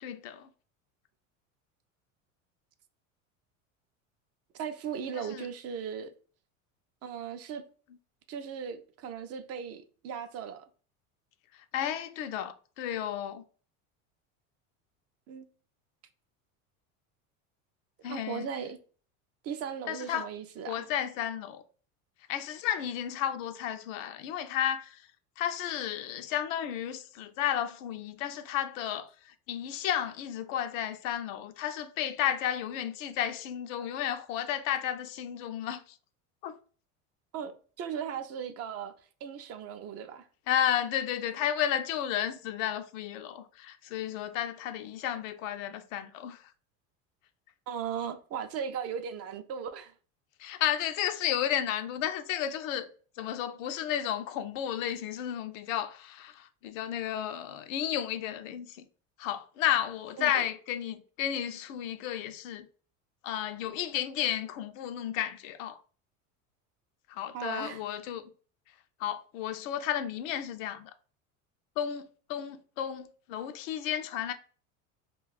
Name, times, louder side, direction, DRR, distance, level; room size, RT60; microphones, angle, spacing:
voice 1, 0.0-0.5 5.3-5.5 11.7-13.4 18.0-18.5 19.9-20.3 20.7-21.6 22.3-25.0 25.4-29.1 29.5-35.8 36.4-36.5 40.5-46.4 50.4-52.9 53.2-58.8 59.2-62.6 63.2-65.8 67.1-68.3 69.0-70.9 71.8-74.3, left 10 dB, 70° left, 0.6 m, -32 dB
voice 2, 4.5-6.1 7.0-7.6 8.3-10.7 15.3-15.5 18.1-18.8 19.4-20.9 37.3-38.9 39.2-40.3 47.7-49.9 60.2-60.5 67.3-67.8, right 7 dB, 40° right, 0.4 m, -37 dB
2.4 x 2.3 x 4.0 m
hypercardioid pair, 90°, 41 cm